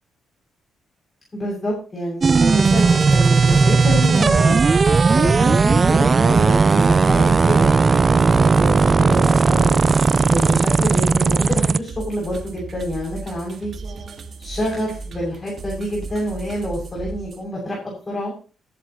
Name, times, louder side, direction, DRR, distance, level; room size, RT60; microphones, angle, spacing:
voice 1, 1.3-4.6 5.1-9.7 10.2-13.7 14.4-18.3, equal, 25° left, -3 dB, 7.7 m, -27 dB
sound 1, 2.2-11.8, right 4 dB, 35° right, 0.5 m, -16 dB
sound 2, 2.6-17.4, right 4 dB, 50° right, 2.2 m, -35 dB
15.5 x 12.0 x 3.2 m, 0.38 s
cardioid pair, 90°, 0 cm